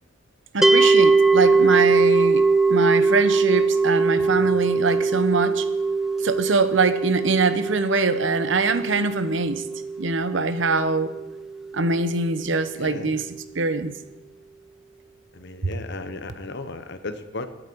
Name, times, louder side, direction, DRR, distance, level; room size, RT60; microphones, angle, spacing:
voice 1, 0.5-2.4 2.7-5.7 6.2-9.6 10.0-11.1 11.7-13.3 13.5-14.0 15.6-15.7, right 3 dB, 70° right, 0.9 m, -23 dB
sound 1, 0.6-11.8, right 4 dB, ahead, 0.5 m, -21 dB
voice 2, 12.8-13.2 15.3-17.5, left 3 dB, 65° left, 1.2 m, -35 dB
21.5 x 9.0 x 4.6 m
head